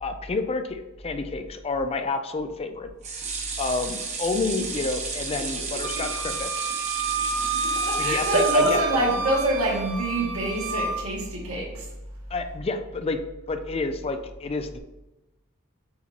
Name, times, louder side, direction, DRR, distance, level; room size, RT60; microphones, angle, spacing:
voice 1, 0.0-2.9 3.6-6.7 7.9-9.0 12.3-13.2 13.5-14.8, left 3 dB, 25° left, 8 dB, 0.4 m, -29 dB
sound 1, 3.0-9.3 9.8-9.9 10.2-10.3, right 4 dB, 30° right, 1.0 m, -33 dB
voice 2, 5.7-6.0 7.2-11.9, right 1 dB, 85° right, -4 dB, 2.0 m, -26 dB
Wind instrument woodwind instrument, 5.8-11.0, right 4 dB, 65° right, 0.6 m, -29 dB
8.3 x 4.4 x 2.8 m, 1.0 s
head